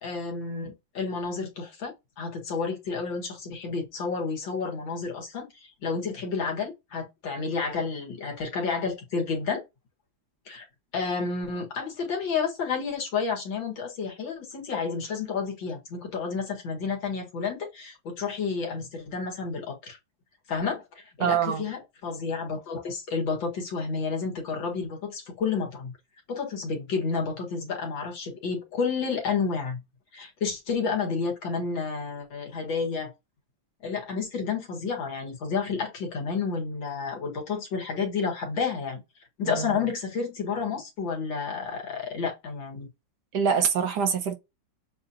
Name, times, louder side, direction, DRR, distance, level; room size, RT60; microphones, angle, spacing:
voice 1, 0.0-9.6 10.5-10.7 10.9-20.0 20.5-25.9 26.3-29.8 30.1-33.1 33.8-39.0 39.4-42.9, left 5 dB, 80° left, 2.4 m, -30 dB
voice 2, 21.2-21.7 39.4-39.8 43.3-44.3, right 7 dB, 65° right, 1.2 m, -25 dB
7.6 x 2.8 x 2.5 m
omnidirectional pair, 2.1 m